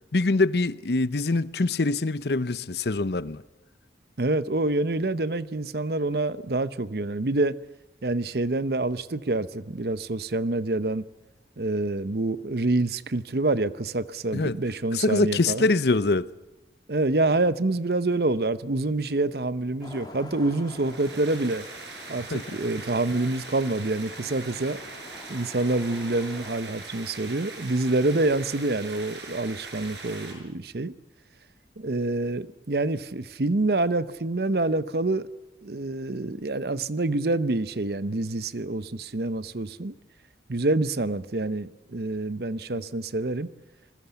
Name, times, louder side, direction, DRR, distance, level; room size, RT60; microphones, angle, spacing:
voice 1, 0.1-3.4 14.3-14.6 14.9-16.3 22.3-22.4 42.7-42.8, left 3 dB, 70° left, 0.8 m, -24 dB
voice 2, 4.2-7.6 8.0-11.0 11.6-15.7 16.9-21.6 22.1-24.8 25.3-30.9 31.8-35.3 35.6-39.9 40.5-43.5, right 2 dB, 60° right, 0.8 m, -27 dB
Traffic noise roadway noise, 19.8-26.6, left 1 dB, 25° left, 2.1 m, -47 dB
sound 1, 20.6-30.3, right 3 dB, 85° right, 6.2 m, -41 dB
27.0 x 21.0 x 7.0 m
head